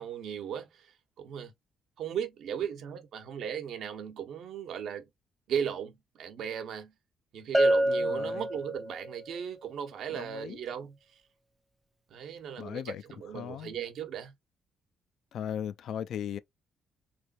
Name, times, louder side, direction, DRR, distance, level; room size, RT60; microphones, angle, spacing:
voice 1, 0.0-1.5 2.0-5.1 5.5-6.9 7.3-11.2 12.1-14.3, right 8 dB, 70° right, 1.0 m, -37 dB
Bell, 7.5-9.2, right 1 dB, 5° right, 0.4 m, -27 dB
voice 2, 7.9-8.4 10.1-10.6 12.6-13.0 13.3-13.8 15.3-16.4, left 9 dB, 65° left, 0.4 m, -37 dB
4.0 x 3.3 x 2.5 m
cardioid pair, 150°, 0 cm